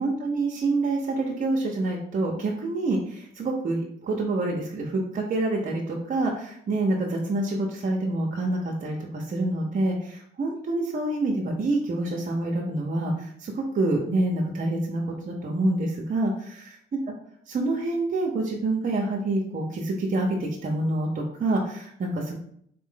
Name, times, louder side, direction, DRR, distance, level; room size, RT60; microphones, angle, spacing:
voice 1, 0.0-17.0 17.5-22.4, right 2 dB, 45° right, 0 dB, 0.8 m, -27 dB
4.0 x 2.5 x 3.7 m, 0.67 s
cardioid pair, 90°, 20 cm